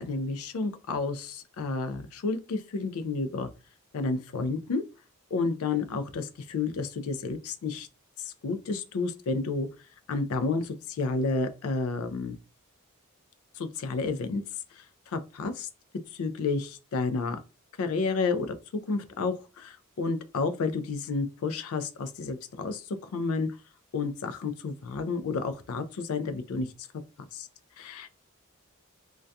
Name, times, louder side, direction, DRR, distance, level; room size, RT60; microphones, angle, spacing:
voice 1, 0.0-3.5 3.9-4.8 5.3-7.9 8.2-9.7 10.1-12.4 13.6-14.4 14.8-15.7 16.1-17.4 17.8-18.5 18.9-23.5 23.9-26.7 27.3-27.5 27.8-28.1, left 4 dB, 85° left, 0.4 m, -31 dB
2.2 x 2.2 x 2.6 m
head